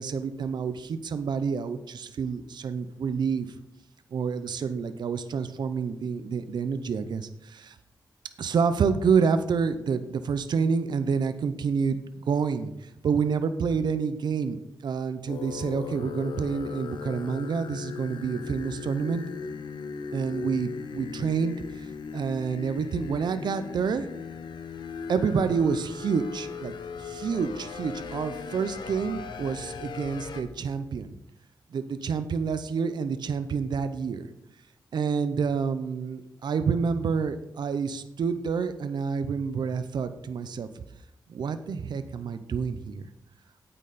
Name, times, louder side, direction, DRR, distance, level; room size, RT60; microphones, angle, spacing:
voice 1, 0.0-3.5 4.1-7.8 8.4-12.0 12.3-19.2 20.1-24.1 25.1-26.7 27.0-31.2 31.7-34.3 34.9-40.8 41.3-43.1, right 5 dB, 70° right, 11 dB, 0.6 m, -28 dB
sound 1, 15.3-30.4, left 5 dB, 80° left, 0.9 m, -38 dB
8.8 x 8.7 x 4.1 m, 0.82 s
cardioid pair, 85°, 8 cm